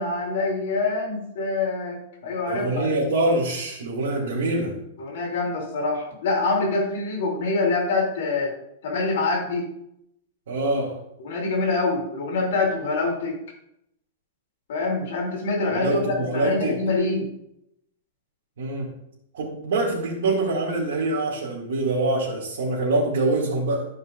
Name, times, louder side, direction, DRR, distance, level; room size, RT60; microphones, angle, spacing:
voice 1, 0.0-2.9 5.0-8.5 8.8-9.7 11.2-13.3 14.7-17.3, left 3 dB, 55° left, -2 dB, 3.1 m, -25 dB
voice 2, 2.2-4.8 10.5-11.0 15.7-16.8 18.6-18.9 19.3-23.9, right 2 dB, 70° right, -7 dB, 2.6 m, -25 dB
13.5 x 5.3 x 2.6 m, 0.79 s
supercardioid pair, 180°, 0 cm